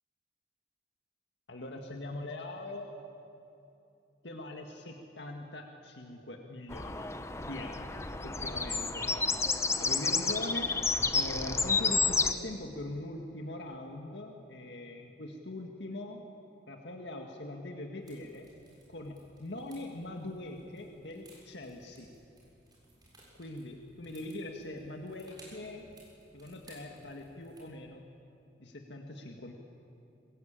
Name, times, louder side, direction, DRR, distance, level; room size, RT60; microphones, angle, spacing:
voice 1, 1.5-2.9 4.2-7.1 7.4-7.9 8.2-9.4 9.8-10.7 11.1-16.2 16.7-18.5 18.9-22.1 23.3-25.9 26.3-28.0 28.6-29.5, left 1 dB, 75° left, 2 dB, 1.9 m, -42 dB
sound 1, 6.7-12.3, left 4 dB, 15° left, 0.9 m, -30 dB
sound 2, 18.0-27.6, right 1 dB, 20° right, 7.0 m, -60 dB
24.0 x 21.0 x 9.0 m, 2.8 s
head